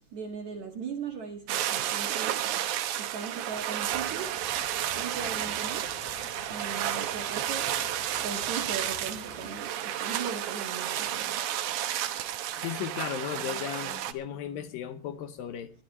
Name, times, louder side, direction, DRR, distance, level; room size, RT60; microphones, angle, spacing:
voice 1, 0.1-2.4 3.0-4.3 5.0-5.9 6.5-7.7 8.2-11.2, right 5 dB, 55° right, 3 dB, 2.6 m, -38 dB
sound 1, 1.5-14.1, right 11 dB, 70° right, 1.9 m, -32 dB
sound 2, 3.8-9.6, left 9 dB, 90° left, 3.4 m, -50 dB
voice 2, 12.6-15.7, left 10 dB, 75° left, 11 dB, 2.3 m, -35 dB
23.0 x 13.5 x 3.1 m, 0.37 s
omnidirectional pair, 4.7 m